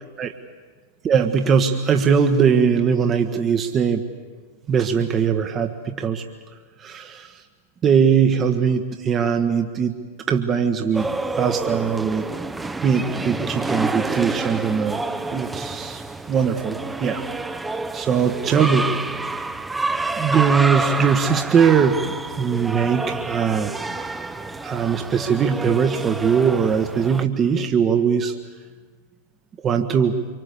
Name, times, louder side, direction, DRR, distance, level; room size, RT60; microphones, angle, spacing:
voice 1, 1.0-4.0 4.7-6.2 6.8-7.4 7.8-10.0 10.3-11.1 11.3-12.2 12.8-15.0 15.3-16.0 16.3-17.2 17.9-19.0 20.2-23.7 24.6-28.3 29.6-30.2, right 6 dB, 25° right, 5 dB, 1.4 m, -20 dB
sound 1, 10.9-27.3, right 3 dB, 10° right, 1.0 m, -28 dB
25.5 x 24.5 x 8.3 m, 1.5 s
figure-of-eight pair, 90°, 0 cm